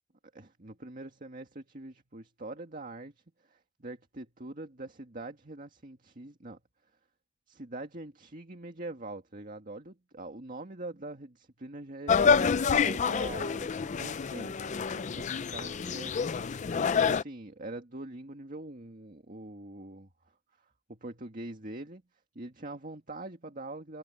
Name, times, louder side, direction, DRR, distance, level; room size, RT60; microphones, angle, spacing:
voice 1, 0.3-6.6 7.5-16.5 16.9-22.0 22.4-24.0, right 2 dB, 45° right, 1.9 m, -44 dB
sound 1, 12.1-17.2, left 6 dB, 40° left, 0.4 m, -27 dB
head